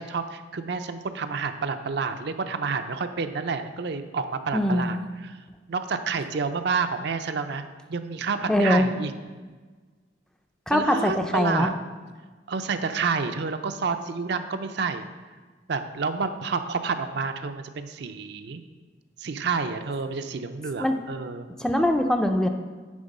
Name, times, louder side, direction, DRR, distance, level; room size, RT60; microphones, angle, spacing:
voice 1, 0.0-5.4 5.7-7.6 7.9-9.1 10.7-11.8 12.5-15.1 15.7-18.6 19.2-21.5, right 5 dB, 60° right, 8 dB, 0.5 m, -29 dB
voice 2, 4.5-4.9 8.5-8.9 10.7-11.7 20.8-21.0 21.6-22.5, left 1 dB, 5° left, 5 dB, 0.4 m, -22 dB
9.7 x 3.7 x 5.3 m, 1.4 s
head